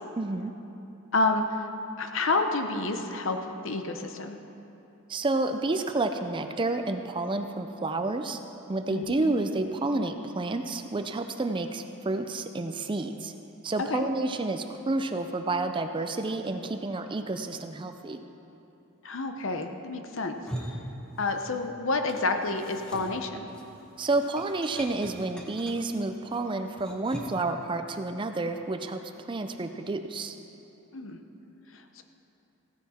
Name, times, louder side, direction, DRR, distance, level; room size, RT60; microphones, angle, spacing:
voice 1, 0.2-0.5 5.1-8.4 8.7-13.3 13.6-18.2 24.0-29.0 29.3-30.4, right 2 dB, 20° right, 7 dB, 0.4 m, -30 dB
voice 2, 1.1-1.7 2.0-4.4 8.9-9.2 13.8-14.1 19.0-20.4 21.2-23.5 30.9-31.2 32.0-32.1, left 3 dB, 65° left, 6 dB, 0.8 m, -29 dB
sound 1, 20.2-21.7 21.9-27.5, equal, 5° left, 0.9 m, -42 dB
15.5 x 9.6 x 4.3 m, 2.9 s
head